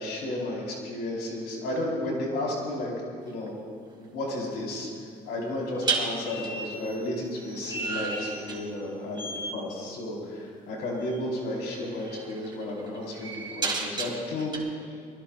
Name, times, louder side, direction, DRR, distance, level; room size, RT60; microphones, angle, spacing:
voice 1, 0.0-2.9 3.2-3.5 4.0-4.9 5.3-14.9, left 1 dB, 80° left, -3 dB, 4.5 m, -33 dB
sound 1, 3.2-3.5 5.8-8.9 9.2-9.6 11.1-11.3 11.7-14.6, right 3 dB, 25° right, 2.7 m, -33 dB
23.0 x 19.5 x 2.5 m, 2.4 s
cardioid pair, 110°, 17 cm